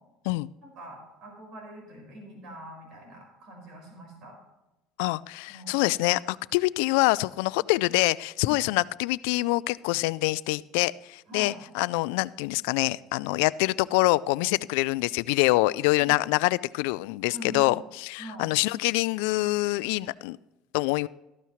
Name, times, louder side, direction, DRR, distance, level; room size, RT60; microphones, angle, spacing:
voice 1, 0.6-4.4 5.5-5.8 7.5-7.6 8.4-8.7 11.3-11.6 16.0-16.1 17.2-17.8 18.2-18.5, right 1 dB, 60° right, 1 dB, 4.7 m, -44 dB
voice 2, 5.0-20.4 20.7-21.1, left 21 dB, 85° left, 20 dB, 0.3 m, -25 dB
13.5 x 12.5 x 3.1 m, 0.98 s
cardioid pair, 125°, 0 cm